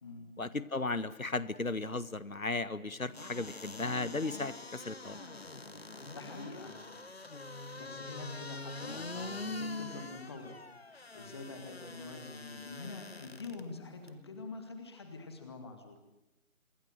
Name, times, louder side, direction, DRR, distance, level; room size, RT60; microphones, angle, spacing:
voice 1, 0.4-5.2, left 3 dB, 70° left, 16 dB, 1.7 m, -35 dB
sound 1, 3.1-13.6 14.1-14.2, left 2 dB, 45° left, 1.9 m, -44 dB
voice 2, 6.1-6.9 7.5-10.6 10.9-16.0, left 3 dB, 20° left, 6 dB, 2.2 m, -46 dB
26.5 x 22.5 x 6.6 m, 0.97 s
figure-of-eight pair, 160°, 43 cm